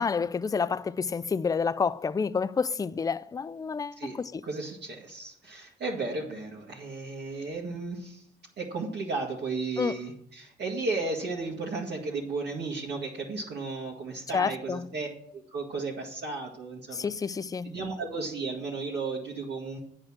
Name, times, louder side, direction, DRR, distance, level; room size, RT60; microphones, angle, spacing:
voice 1, 0.0-4.4 9.8-10.0 14.3-14.9 16.9-17.7, left 5 dB, 20° left, 0.3 m, -29 dB
voice 2, 3.9-8.2 8.6-15.1 15.3-17.1 17.6-19.8, right 3 dB, 55° right, 1.8 m, -34 dB
8.7 x 5.3 x 7.3 m
cardioid pair, 90°, 20 cm